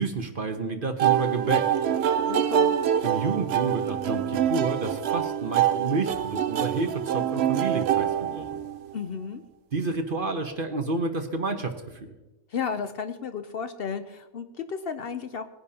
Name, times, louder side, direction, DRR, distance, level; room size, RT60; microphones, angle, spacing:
voice 1, 0.0-1.7 3.0-8.5 9.7-12.1, right 3 dB, 40° right, 6 dB, 1.0 m, -29 dB
sound 1, 1.0-8.9, right 10 dB, 65° right, 0.6 m, -25 dB
voice 2, 2.2-2.7 8.9-9.4 12.5-15.5, left 6 dB, 70° left, 10 dB, 0.5 m, -33 dB
20.5 x 10.5 x 2.8 m, 1.1 s
omnidirectional pair, 1.6 m